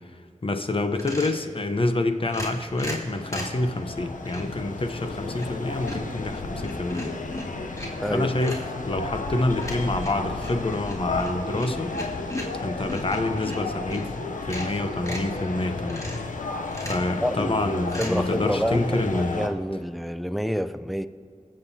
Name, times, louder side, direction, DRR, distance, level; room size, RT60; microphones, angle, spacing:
voice 1, 0.4-7.1 8.1-8.6 8.9-11.9 12.6-14.1 14.4-16.1 16.8-19.4, left 2 dB, 45° left, 7 dB, 0.9 m, -27 dB
sound 1, 1.0-1.4 2.3-3.6 4.2-4.6 5.1-5.6 5.9-8.1 8.4-8.7 9.6-14.1 14.4-15.3 15.9-16.3 16.7-17.1 17.9-18.1, left 1 dB, 25° left, 2.4 m, -36 dB
sound 2, 2.7-19.5, left 3 dB, 85° left, 0.7 m, -33 dB
voice 2, 7.9-8.5 17.2-21.1, equal, ahead, 11 dB, 0.5 m, -28 dB
22.5 x 7.7 x 2.8 m, 2.2 s
cardioid pair, 45°, 13 cm